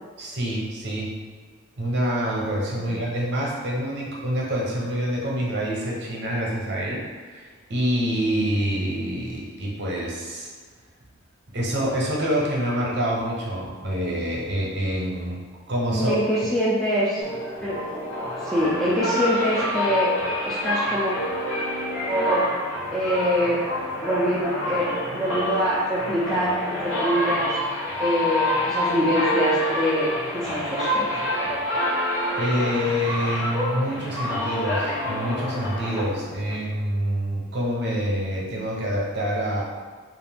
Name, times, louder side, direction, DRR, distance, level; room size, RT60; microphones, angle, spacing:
voice 1, 0.2-1.1 1.8-10.5 11.5-15.4 15.7-16.1 32.4-39.6, equal, 55° right, -3 dB, 0.7 m, -26 dB
voice 2, 15.9-17.2 17.6-17.8 18.4-20.1 20.4-21.1 22.1-22.4 22.9-23.6 24.0-27.5 28.0-31.1, equal, ahead, -8 dB, 0.3 m, -24 dB
sound 1, 17.2-36.6, left 1 dB, 70° left, 0.9 m, -27 dB
2.5 x 2.4 x 3.4 m, 1.5 s
head